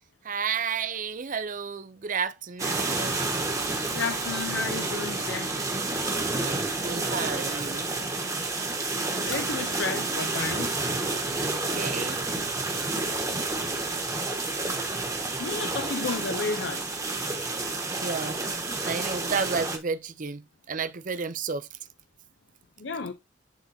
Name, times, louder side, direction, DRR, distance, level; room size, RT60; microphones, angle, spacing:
voice 1, 0.2-3.3 3.8-3.9 6.4-7.9 11.3-12.2 18.0-18.4 18.8-21.7, right 5 dB, 45° right, 0.6 m, -32 dB
sound 1, 2.6-19.8, right 2 dB, 15° right, 1.2 m, -30 dB
voice 2, 3.9-5.5 9.2-10.7 15.4-16.9 22.8-23.1, left 4 dB, 65° left, 0.6 m, -32 dB
10.0 x 3.8 x 2.7 m
head